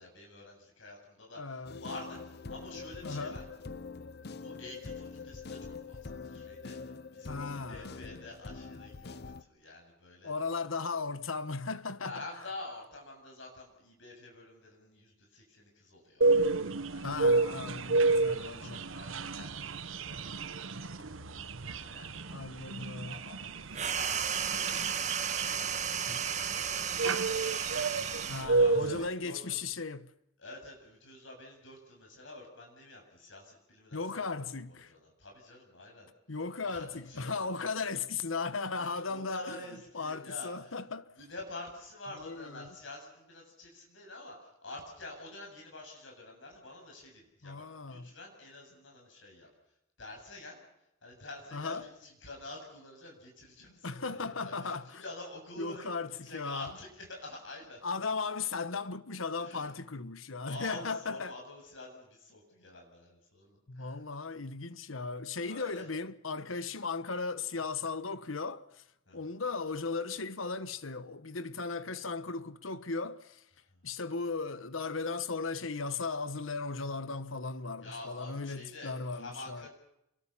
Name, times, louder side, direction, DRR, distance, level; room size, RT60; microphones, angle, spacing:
voice 1, 0.0-3.5 4.3-6.8 7.1-10.3 12.0-16.3 16.9-17.2 17.6-20.9 21.1-25.0 25.2-29.6 30.4-34.2 34.7-36.1 36.6-37.9 38.7-40.8 41.2-49.5 50.0-50.6 51.0-57.8 59.4-59.7 60.4-64.0 65.4-65.9 69.1-69.3 77.8-79.7, left 2 dB, 70° left, 7.8 m, -48 dB
voice 2, 1.4-1.8 3.0-3.4 7.3-8.0 10.2-12.2 17.0-18.8 22.3-23.1 26.1-26.2 28.3-30.1 33.9-34.9 36.3-39.6 39.9-41.1 42.1-42.7 47.4-48.1 51.5-51.9 53.8-55.0 55.6-56.7 57.8-61.4 63.7-68.8 69.1-73.4 73.8-79.7, left 4 dB, 90° left, 1.2 m, -37 dB
sound 1, 1.6-9.4, left 4 dB, 55° left, 0.8 m, -44 dB
sound 2, 16.2-29.1, right 3 dB, 80° right, 1.1 m, -30 dB
sound 3, 23.7-28.5, right 7 dB, 35° right, 1.4 m, -33 dB
27.5 x 23.0 x 5.8 m
head